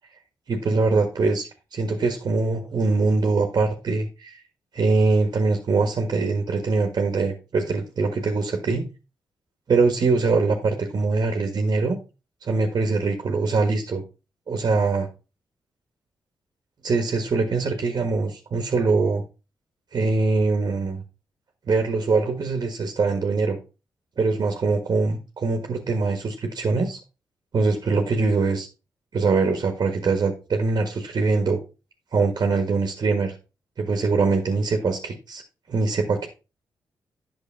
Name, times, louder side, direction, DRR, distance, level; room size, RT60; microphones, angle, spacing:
voice 1, 0.5-4.4 4.7-8.8 9.7-12.0 12.4-14.0 14.5-15.1 16.8-19.2 19.9-21.0 21.6-23.6 24.2-27.0 27.5-28.7 29.1-31.6 32.1-33.3 33.8-35.4 35.7-36.3, right 3 dB, 55° right, 4 dB, 1.5 m, -23 dB
8.6 x 6.5 x 3.5 m, 0.30 s
supercardioid pair, 55°, 8 cm